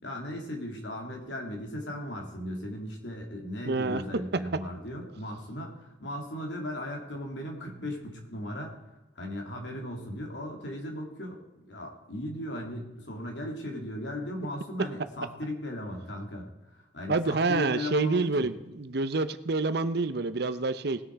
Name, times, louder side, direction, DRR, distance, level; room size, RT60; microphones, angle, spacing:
voice 1, 0.0-8.8 9.1-18.5, left 1 dB, 80° left, 2 dB, 2.9 m, -37 dB
voice 2, 3.6-4.0 17.1-21.0, right 3 dB, 60° right, 12 dB, 0.8 m, -27 dB
19.5 x 6.6 x 4.7 m, 1.0 s
head